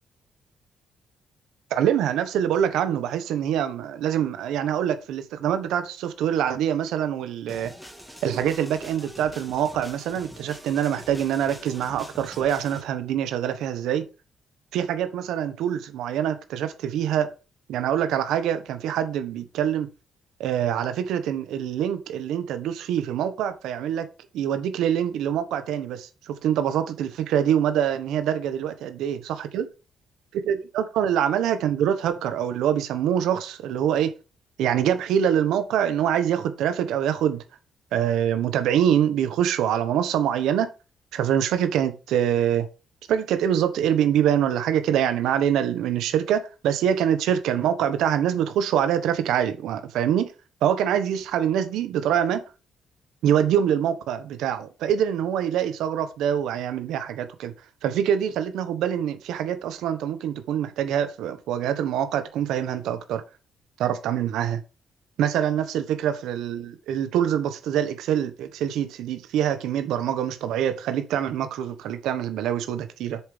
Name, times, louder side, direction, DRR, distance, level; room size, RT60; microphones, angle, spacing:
voice 1, 1.7-7.7 8.2-14.1 14.7-17.3 17.7-19.9 20.4-24.1 24.3-29.2 29.5-29.6 30.3-34.1 34.6-37.4 37.9-40.7 41.1-42.7 43.1-50.3 50.6-52.4 53.2-57.5 57.8-63.2 63.8-64.6 65.2-73.2, right 9 dB, 85° right, 1.2 m, -25 dB
sound 1, 7.5-12.8, equal, ahead, 2.2 m, -44 dB
7.8 x 7.0 x 3.3 m
cardioid pair, 90°, 0 cm